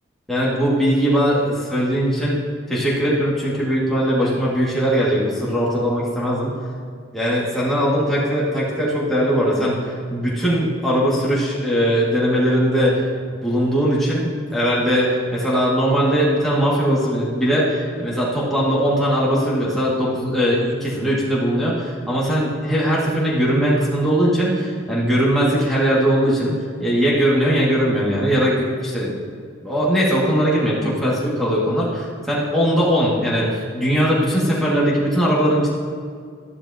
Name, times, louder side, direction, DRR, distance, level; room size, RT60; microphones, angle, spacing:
voice 1, 0.3-2.4 2.7-6.5 7.1-13.0 13.3-26.5 26.8-29.1 29.6-35.7, equal, ahead, -8 dB, 2.0 m, -20 dB
12.5 x 10.5 x 2.9 m, 2.1 s
head